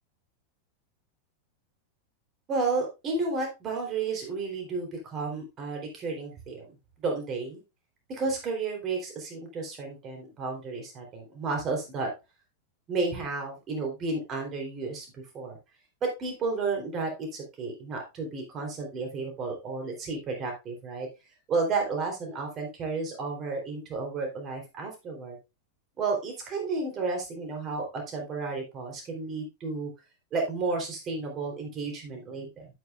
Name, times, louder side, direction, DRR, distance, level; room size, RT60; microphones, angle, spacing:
voice 1, 2.5-6.7 7.0-7.6 8.1-12.1 12.9-15.6 16.0-21.1 21.5-25.4 26.0-29.9 30.3-32.7, right 3 dB, 30° right, 1 dB, 3.5 m, -32 dB
9.2 x 8.2 x 2.4 m, 0.24 s
figure-of-eight pair, 90°, 0 cm